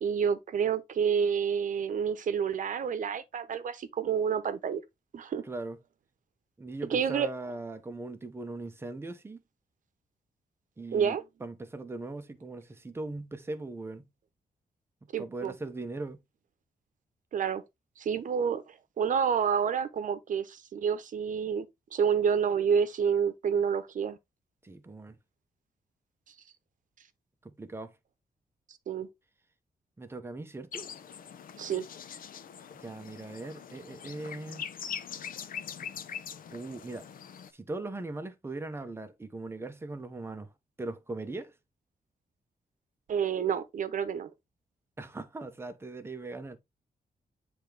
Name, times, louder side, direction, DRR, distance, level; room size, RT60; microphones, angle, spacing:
voice 1, 0.0-4.8 5.1-5.4 6.9-7.3 10.9-11.2 15.1-15.5 17.3-17.6 18.0-24.2 28.9-29.1 31.6-31.8 43.1-44.3, right 7 dB, 60° right, 0.9 m, -29 dB
voice 2, 5.4-5.8 6.6-9.4 10.8-14.1 15.0-16.2 24.6-25.2 27.4-27.9 30.0-30.9 32.7-34.7 36.5-37.1 37.5-40.5 40.8-41.5 45.0-46.6, right 2 dB, 15° right, 0.9 m, -40 dB
sound 1, 30.7-37.5, left 7 dB, 65° left, 0.8 m, -42 dB
9.8 x 3.5 x 3.4 m
wide cardioid pair, 170°, 15 cm